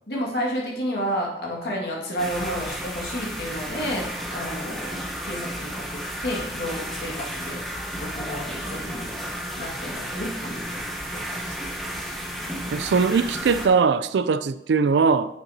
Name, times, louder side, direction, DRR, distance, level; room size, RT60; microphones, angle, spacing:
voice 1, 0.1-7.6 8.0-9.1 9.6-10.8 11.1-11.7, equal, 70° left, -3 dB, 1.9 m, -31 dB
sound 1, 2.2-13.7, equal, ahead, 0.8 m, -33 dB
voice 2, 12.7-15.4, right 5 dB, 80° right, 14 dB, 0.4 m, -21 dB
8.6 x 6.6 x 2.8 m, 0.84 s
head